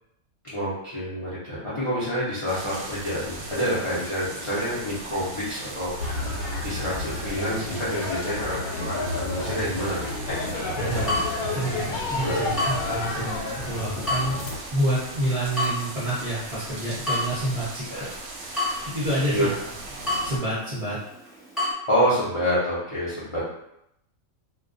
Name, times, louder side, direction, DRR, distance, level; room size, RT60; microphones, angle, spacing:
voice 1, 0.5-5.9 6.6-8.6 8.8-10.3 10.6-10.7 12.2-12.4 17.9-18.1 19.3-19.5 21.9-23.4, equal, 45° left, -10 dB, 0.4 m, -27 dB
sound 1, 2.5-20.4, right 2 dB, 90° right, 1.1 m, -39 dB
sound 2, 6.0-14.6, left 2 dB, 80° left, 1.0 m, -31 dB
voice 2, 10.7-11.1 11.5-14.4 14.7-18.1 18.4-19.5 20.1-21.0, right 1 dB, 45° right, -11 dB, 0.5 m, -28 dB
Water tap faucet / Drip, 11.0-21.7, left 2 dB, ahead, 1.2 m, -33 dB
2.2 x 2.2 x 2.5 m, 0.79 s
omnidirectional pair, 1.5 m